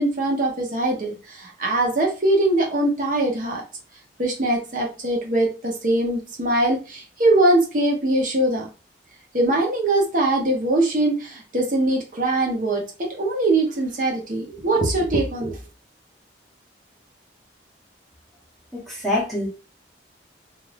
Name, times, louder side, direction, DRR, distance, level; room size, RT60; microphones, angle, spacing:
voice 1, 0.0-3.6 4.2-8.7 9.3-15.6, right 2 dB, 45° right, 0 dB, 0.8 m, -22 dB
voice 2, 18.7-19.5, left 1 dB, ahead, -6 dB, 0.9 m, -25 dB
2.5 x 2.4 x 3.2 m, 0.32 s
head